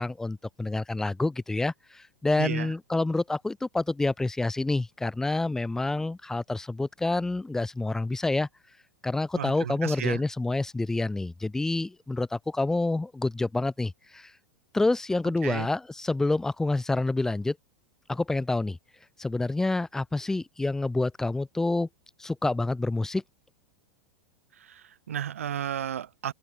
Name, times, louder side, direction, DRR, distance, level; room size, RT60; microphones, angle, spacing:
voice 1, 0.0-8.5 9.0-14.3 14.7-17.6 18.1-18.8 19.2-21.9 22.2-23.2, left 2 dB, 5° left, 0.3 m, -28 dB
voice 2, 2.4-2.7 9.4-10.2 15.4-15.7 24.6-26.3, right 9 dB, 85° right, 0.5 m, -33 dB
hypercardioid pair, 100°, 7 cm